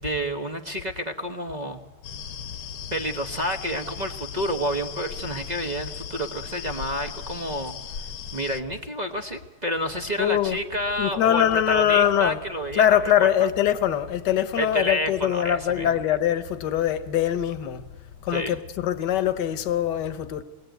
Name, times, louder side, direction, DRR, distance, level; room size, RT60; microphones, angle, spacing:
voice 1, 0.0-1.8 2.9-8.1 8.3-13.5 14.6-16.0 18.3-18.6, equal, 35° right, 0.6 m, -29 dB
sound 1, 2.0-8.6, left 8 dB, 80° left, 2.0 m, -37 dB
voice 2, 10.2-10.6 11.0-12.4 12.7-17.8 18.2-20.4, left 10 dB, 60° left, 1.5 m, -23 dB
27.5 x 20.5 x 9.2 m
omnidirectional pair, 2.4 m